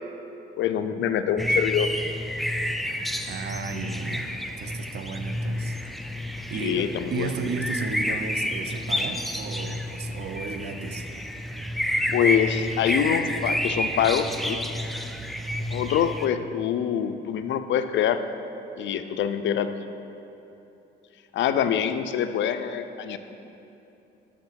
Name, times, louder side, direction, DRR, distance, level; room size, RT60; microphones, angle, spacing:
voice 1, 0.6-1.9 6.6-7.3 12.1-14.6 15.7-18.2 18.8-19.7 21.3-23.2, left 9 dB, 70° left, 9 dB, 0.5 m, -25 dB
sound 1, 1.4-16.3, equal, ahead, 0.4 m, -29 dB
voice 2, 3.3-4.3 4.6-5.8 6.5-11.1, right 4 dB, 55° right, 7 dB, 0.6 m, -34 dB
6.5 x 6.4 x 5.7 m, 2.9 s
cardioid pair, 90°, 20 cm